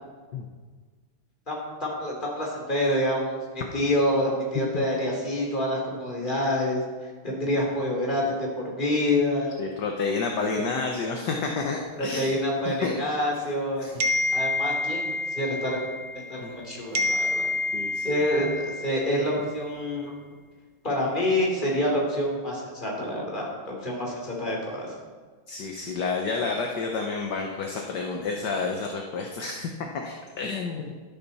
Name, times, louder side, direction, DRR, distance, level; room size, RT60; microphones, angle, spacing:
voice 1, 1.5-9.5 10.5-10.6 12.0-13.9 14.3-15.8 16.3-17.5 18.0-20.1 20.8-24.9, left 1 dB, 25° left, -2 dB, 3.2 m, -27 dB
voice 2, 9.6-12.3 12.6-12.9 13.8-13.9 16.4-16.5 17.7-18.2 25.5-30.9, left 4 dB, 60° left, 2 dB, 1.5 m, -30 dB
sound 1, 14.0-16.6 16.9-19.5, left 2 dB, 70° right, 0.5 m, -28 dB
13.0 x 12.0 x 4.2 m, 1.5 s
omnidirectional pair, 2.2 m